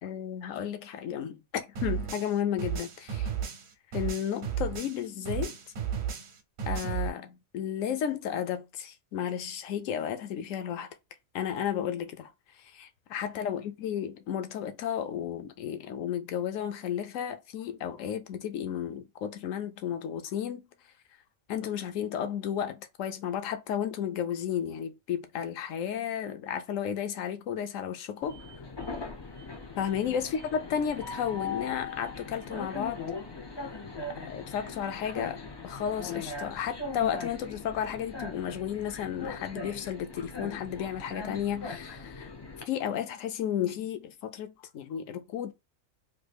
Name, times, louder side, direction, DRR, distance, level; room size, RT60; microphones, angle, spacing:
voice 1, 0.0-3.3 3.9-5.5 6.7-10.9 11.3-12.3 12.7-20.6 21.5-28.4 29.8-33.0 34.1-42.3 42.7-45.5, left 9 dB, 75° left, 0.9 m, -33 dB
sound 1, 1.8-5.0 5.3-7.1, right 8 dB, 65° right, 1.0 m, -33 dB
Train, 28.2-42.6, left 4 dB, 40° left, 0.3 m, -40 dB
3.2 x 2.3 x 3.3 m
omnidirectional pair, 1.4 m